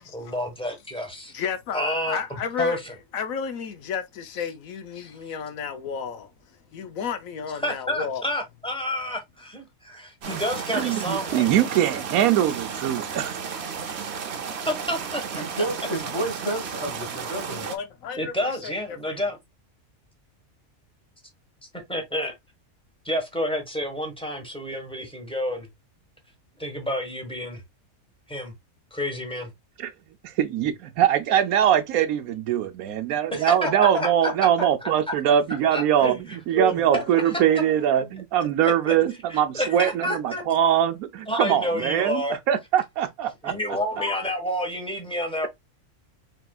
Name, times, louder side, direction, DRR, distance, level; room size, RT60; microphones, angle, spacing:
voice 1, 0.1-1.3 1.7-2.2 2.6-2.9 7.6-11.5 14.7-15.6 18.2-19.4 21.9-22.3 23.0-25.7 26.6-27.6 28.3-28.5 28.9-29.5 33.3-33.7 34.0-34.3 34.8-34.9 35.2-35.3 35.7-37.3 38.6-38.9 39.3-40.4 41.3-42.4 43.4-45.5, equal, 5° left, 1.2 m, -29 dB
voice 2, 1.3-2.8 3.1-6.3 6.7-8.2 17.7-18.3 18.6-19.2 44.0-44.2, left 7 dB, 80° left, 1.1 m, -32 dB
sound 1, 10.2-17.8, right 6 dB, 55° right, 0.9 m, -33 dB
voice 3, 10.7-13.4 29.8-29.9 30.2-43.5, right 10 dB, 85° right, 1.1 m, -22 dB
voice 4, 15.3-17.7 33.9-34.3 36.6-38.1, right 1 dB, 20° left, 1.5 m, -32 dB
4.7 x 3.6 x 2.3 m
omnidirectional pair, 1.5 m